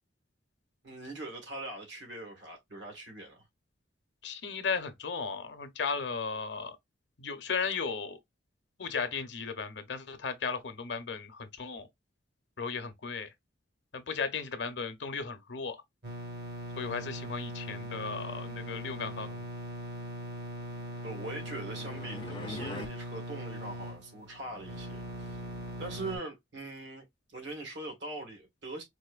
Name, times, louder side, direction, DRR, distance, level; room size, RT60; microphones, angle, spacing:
voice 1, 0.8-3.4 21.0-25.4 25.8-28.8, right 2 dB, 75° right, 1.6 m, -42 dB
voice 2, 4.2-6.8 7.2-8.2 8.8-11.9 12.6-13.3 13.9-15.8 16.8-19.5, left 5 dB, 65° left, 0.6 m, -35 dB
sound 1, 16.0-26.2, equal, 60° right, 1.3 m, -41 dB
sound 2, 20.9-22.9, left 3 dB, 25° left, 0.4 m, -43 dB
4.2 x 2.6 x 2.3 m
head